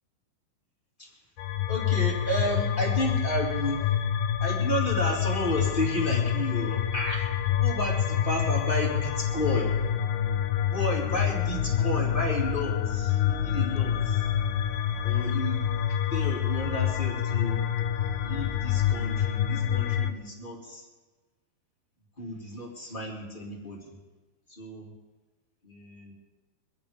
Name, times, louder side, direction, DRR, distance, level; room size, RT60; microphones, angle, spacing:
sound 1, 1.4-20.1, left 9 dB, 80° left, 2.8 m, -27 dB
voice 1, 1.7-3.9 4.4-9.7 10.6-14.3 15.0-15.6 16.1-17.6 18.2-20.9 22.2-24.0 24.5-24.9 25.6-26.1, equal, 15° left, -3 dB, 2.7 m, -32 dB
24.5 x 10.0 x 5.2 m, 1.2 s
omnidirectional pair, 4.8 m